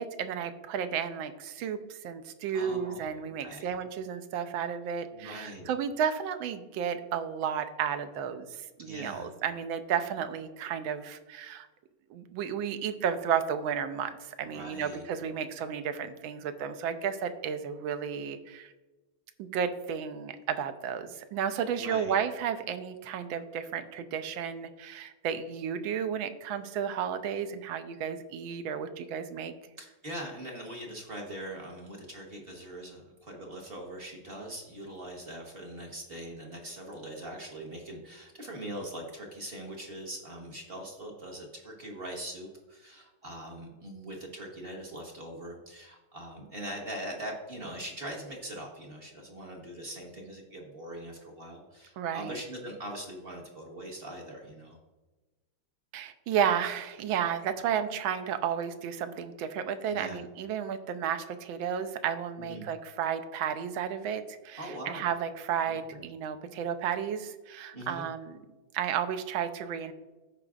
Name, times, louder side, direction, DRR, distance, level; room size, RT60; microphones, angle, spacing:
voice 1, 0.0-11.7 12.1-18.7 19.4-29.5 52.0-52.4 55.9-68.4 68.7-69.9, right 8 dB, 80° right, 10 dB, 1.3 m, -33 dB
voice 2, 2.5-3.7 5.1-5.7 8.8-9.3 14.4-15.1 21.8-22.2 29.8-54.8 59.9-60.2 62.4-62.7 64.6-65.1 65.7-66.0 67.7-68.1, right 1 dB, 35° right, 0 dB, 1.0 m, -42 dB
14.5 x 5.0 x 2.4 m, 1.1 s
omnidirectional pair, 2.3 m